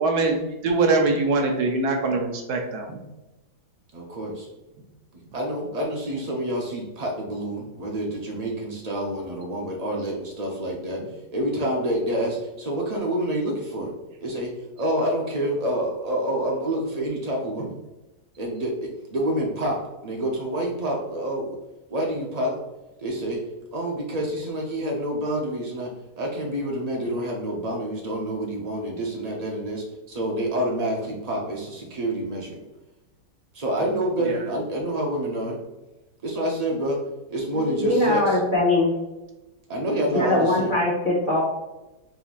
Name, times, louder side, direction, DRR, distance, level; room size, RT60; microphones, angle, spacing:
voice 1, 0.0-3.0 34.2-34.4, right 3 dB, 70° right, 3 dB, 1.2 m, -23 dB
voice 2, 3.9-4.5 5.3-11.0 11.3-13.9 14.2-14.5 14.8-17.8 18.4-21.6 21.9-22.5 23.0-23.4 23.7-25.9 26.2-32.6 33.5-35.6 36.2-37.0 37.3-38.4 39.7-40.7, right 1 dB, 90° right, -1 dB, 0.3 m, -27 dB
voice 3, 37.5-38.9 40.1-41.4, left 2 dB, 40° left, -4 dB, 0.8 m, -22 dB
4.4 x 3.6 x 2.4 m, 1.0 s
omnidirectional pair, 1.8 m